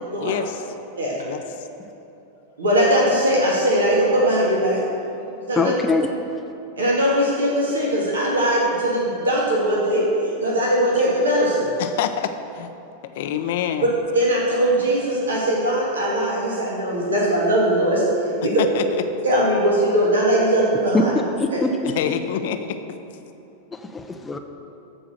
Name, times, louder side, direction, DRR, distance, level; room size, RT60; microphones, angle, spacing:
voice 1, 0.2-0.6 1.1-1.4 11.8-12.7 13.2-13.9 18.6-19.0 21.8-22.8, left 9 dB, 55° left, 8 dB, 0.7 m, -26 dB
voice 2, 2.6-4.8 5.5-5.7 6.8-11.7 13.8-13.9 14.1-18.0 18.4-18.6 19.2-21.1 21.5-21.6, right 1 dB, 70° right, -4 dB, 2.1 m, -20 dB
voice 3, 5.6-6.1 20.9-21.1 21.4-22.0 23.9-24.4, left 3 dB, 15° left, 5 dB, 0.7 m, -22 dB
14.0 x 4.9 x 6.5 m, 2.9 s
figure-of-eight pair, 90°, 0 cm